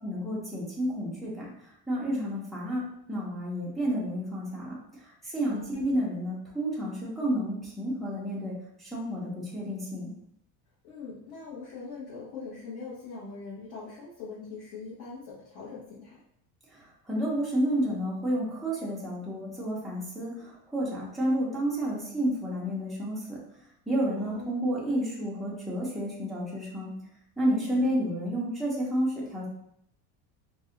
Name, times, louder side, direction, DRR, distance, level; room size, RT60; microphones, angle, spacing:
voice 1, 0.0-1.5 1.9-2.8 3.1-4.8 5.3-8.5 8.8-10.1 17.1-23.4 23.9-26.9 27.4-29.5, equal, ahead, -7 dB, 0.3 m, -30 dB
voice 2, 5.2-5.7 10.8-16.2 24.2-24.6 27.5-27.9, left 4 dB, 50° left, -8 dB, 0.9 m, -42 dB
2.5 x 2.1 x 3.6 m, 0.74 s
cardioid pair, 165°, 43 cm